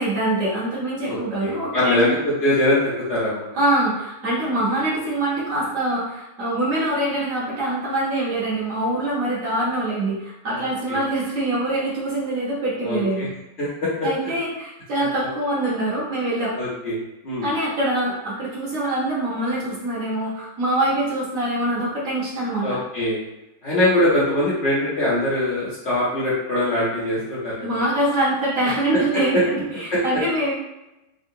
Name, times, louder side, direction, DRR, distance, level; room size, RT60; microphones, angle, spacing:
voice 1, 0.0-2.2 3.5-13.3 14.0-16.5 17.4-22.8 27.6-30.5, right 1 dB, 55° right, -7 dB, 1.2 m, -24 dB
voice 2, 1.0-3.5 10.5-11.0 12.8-13.3 13.6-14.1 16.5-17.0 17.2-17.5 22.6-23.2 23.6-27.8 28.9-29.0, left 1 dB, 55° left, -8 dB, 0.8 m, -22 dB
3.5 x 2.2 x 2.6 m, 0.93 s
omnidirectional pair, 1.8 m